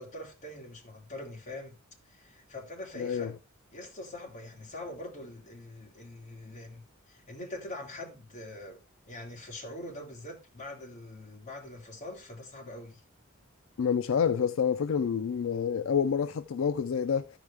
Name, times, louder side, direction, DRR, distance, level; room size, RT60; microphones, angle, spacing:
voice 1, 0.0-1.8 2.1-3.4 3.7-8.8 9.1-13.0, left 1 dB, 35° left, 2.6 m, -43 dB
voice 2, 3.0-3.3 13.8-17.3, left 7 dB, 75° left, 0.4 m, -28 dB
13.5 x 5.0 x 3.3 m
head